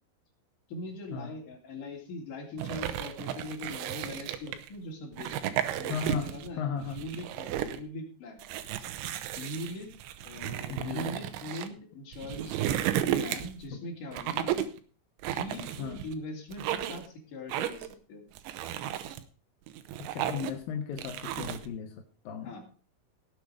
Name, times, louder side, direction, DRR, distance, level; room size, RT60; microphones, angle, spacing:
voice 1, 0.7-6.6 6.9-8.4 9.4-9.9 10.2-12.6 13.2-14.5 15.3-18.3 22.4-22.7, left 1 dB, 45° left, 0 dB, 4.3 m, -41 dB
sound 1, 2.6-4.7 5.1-6.5 6.8-7.8 8.4-11.7 12.1-13.6 14.1-14.8 15.2-16.1 16.5-17.1 17.5-17.9 18.4-19.2 19.7-20.6 21.0-21.7, right 11 dB, 75° right, 3.2 m, -33 dB
voice 2, 5.9-6.3 6.5-7.0 10.7-11.1 13.7-13.8 15.8-16.0 20.0-22.5, left 7 dB, 65° left, 2 dB, 2.4 m, -36 dB
17.5 x 8.0 x 4.9 m, 0.39 s
omnidirectional pair, 5.7 m